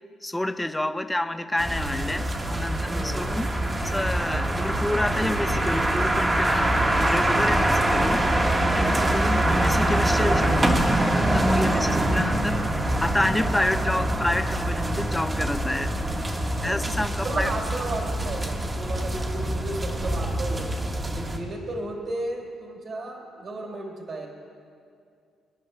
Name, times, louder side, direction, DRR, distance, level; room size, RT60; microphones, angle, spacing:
voice 1, 0.2-3.5 3.8-8.2 8.7-12.6 13.0-15.9 16.6-17.5, left 1 dB, 10° left, 10 dB, 0.6 m, -29 dB
sound 1, 1.6-21.4, right 1 dB, 25° right, 1.5 m, -24 dB
voice 2, 2.8-3.4 11.7-12.0 16.5-16.8 17.2-24.3, right 2 dB, 50° right, -1 dB, 3.3 m, -34 dB
24.5 x 10.5 x 3.3 m, 2.4 s
cardioid pair, 90°, 0 cm